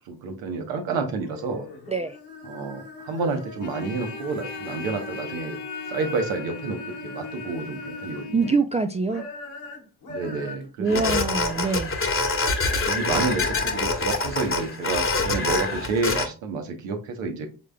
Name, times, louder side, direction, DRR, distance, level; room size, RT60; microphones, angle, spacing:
voice 1, 0.1-1.7 2.5-5.6 5.9-8.5 10.1-11.2 12.9-17.5, right 4 dB, 85° right, 1.0 m, -29 dB
sound 1, 1.1-8.5 9.0-11.5, left 3 dB, 80° left, 1.9 m, -40 dB
Trumpet, 3.6-8.6, left 4 dB, 45° left, 0.6 m, -38 dB
voice 2, 8.3-9.2 10.8-12.0, right 4 dB, 15° right, 0.3 m, -24 dB
sound 2, 10.9-16.3, left 3 dB, 25° left, 1.1 m, -25 dB
4.9 x 3.6 x 2.2 m
hypercardioid pair, 50°, 47 cm